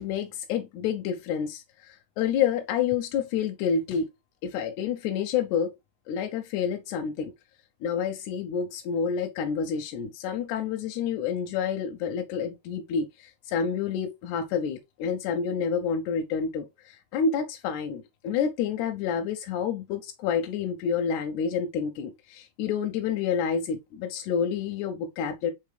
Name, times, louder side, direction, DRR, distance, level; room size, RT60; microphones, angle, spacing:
voice 1, 0.0-4.1 4.4-5.7 6.1-7.3 7.8-25.5, left 7 dB, 90° left, 2.0 m, -29 dB
4.5 x 3.5 x 3.2 m
omnidirectional pair, 3.3 m